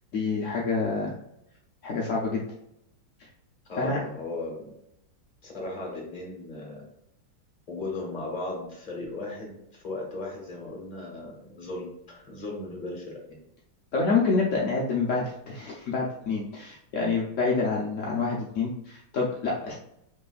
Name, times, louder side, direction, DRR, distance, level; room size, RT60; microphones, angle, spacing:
voice 1, 0.1-1.1 1.8-2.4 3.8-4.0 13.9-19.7, left 4 dB, 65° left, -3 dB, 0.7 m, -27 dB
voice 2, 3.6-4.7 5.4-6.8 7.7-13.4, left 2 dB, 25° left, -1 dB, 1.2 m, -36 dB
5.4 x 3.5 x 2.4 m, 0.80 s
omnidirectional pair, 2.2 m